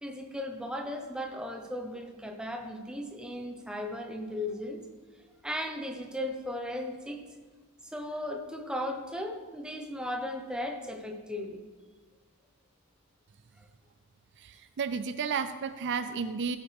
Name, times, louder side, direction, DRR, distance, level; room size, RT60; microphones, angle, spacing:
voice 1, 0.0-4.8 5.4-7.2 7.8-11.6, left 1 dB, 5° right, 3 dB, 1.0 m, -36 dB
voice 2, 14.4-16.6, right 5 dB, 55° right, 11 dB, 0.4 m, -32 dB
16.5 x 8.8 x 3.5 m, 1.4 s
head